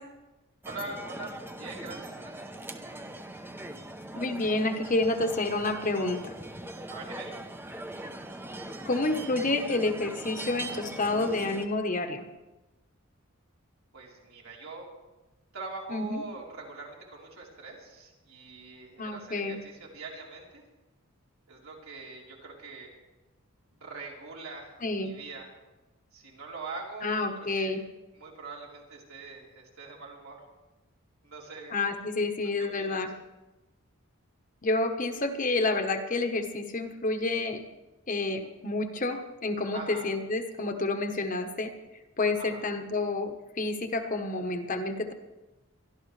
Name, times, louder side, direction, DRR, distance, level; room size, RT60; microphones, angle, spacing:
sound 1, 0.6-11.6, right 1 dB, 10° right, 0.7 m, -41 dB
voice 1, 0.6-3.0 6.9-7.3 13.9-14.9 15.5-20.6 21.5-22.9 23.8-25.5 26.1-27.7 28.1-30.4 31.2-31.8 32.6-33.0 39.7-40.1 42.4-42.6, right 3 dB, 75° right, -3 dB, 3.7 m, -43 dB
voice 2, 4.1-6.3 8.8-12.2 15.9-16.2 19.0-19.6 24.8-25.1 27.0-27.8 31.7-33.1 34.6-37.6 38.1-41.7 42.2-45.1, left 2 dB, 35° left, 6 dB, 1.1 m, -29 dB
22.5 x 13.0 x 3.3 m, 1.1 s
head